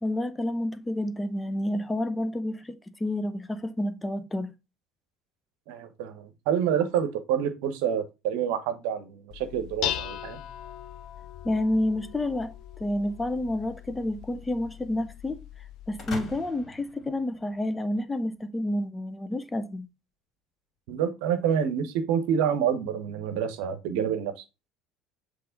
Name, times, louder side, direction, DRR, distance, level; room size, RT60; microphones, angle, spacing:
voice 1, 0.0-4.5 11.4-12.5 12.8-15.4 15.9-19.9, left 1 dB, 15° left, 0.7 m, -29 dB
voice 2, 5.7-10.4 20.9-24.4, right 8 dB, 60° right, 0.9 m, -28 dB
Dishes pots and pans, 9.3-16.4, left 12 dB, 55° left, 0.6 m, -39 dB
sound 1, 16.0-17.9, left 3 dB, 40° left, 2.8 m, -41 dB
7.7 x 3.3 x 3.9 m
figure-of-eight pair, 65°, 0 cm